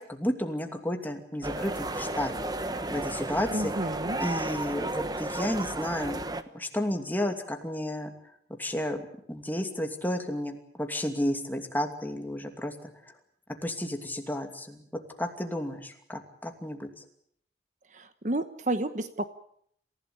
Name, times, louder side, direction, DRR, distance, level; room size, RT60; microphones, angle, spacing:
voice 1, 0.0-2.4 2.9-3.7 4.2-6.2 6.5-8.1 8.6-9.0 9.3-13.1 13.6-14.8 15.2-17.0, left 1 dB, 10° left, 4 dB, 2.6 m, -32 dB
sound 1, 1.4-6.4, right 2 dB, 20° right, 1.2 m, -33 dB
voice 2, 3.5-4.2 17.9-19.3, right 1 dB, 45° right, 10 dB, 1.1 m, -31 dB
27.5 x 16.0 x 8.6 m, 0.68 s
head